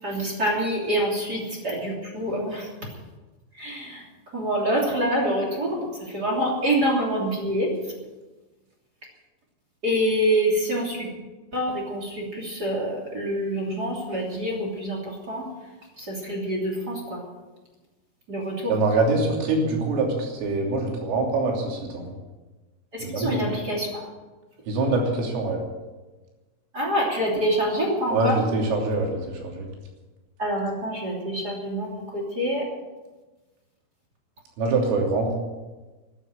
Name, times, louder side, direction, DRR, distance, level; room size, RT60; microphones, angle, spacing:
voice 1, 0.0-2.7 3.5-4.1 4.3-7.7 9.8-11.1 11.5-15.5 16.0-17.2 18.3-18.8 22.9-24.0 26.7-28.4 30.4-32.6, equal, 25° right, -1 dB, 2.6 m, -26 dB
voice 2, 18.7-22.1 23.0-23.5 24.7-25.6 28.1-29.2 29.4-29.6 34.6-35.4, right 3 dB, 90° right, 0 dB, 5.8 m, -24 dB
13.5 x 11.0 x 8.9 m, 1.2 s
omnidirectional pair, 5.7 m